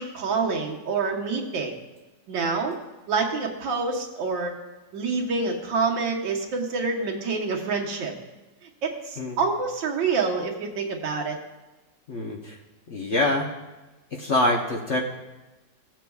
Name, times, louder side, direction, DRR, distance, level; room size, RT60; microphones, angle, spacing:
voice 1, 0.0-1.7 2.3-2.8 3.1-4.5 4.9-8.1 8.8-11.4, right 4 dB, 85° right, 0 dB, 1.9 m, -27 dB
voice 2, 12.1-12.6 12.9-13.5 14.1-15.0, left 2 dB, 50° left, 0 dB, 0.9 m, -25 dB
17.0 x 7.5 x 2.3 m, 1.1 s
omnidirectional pair, 2.0 m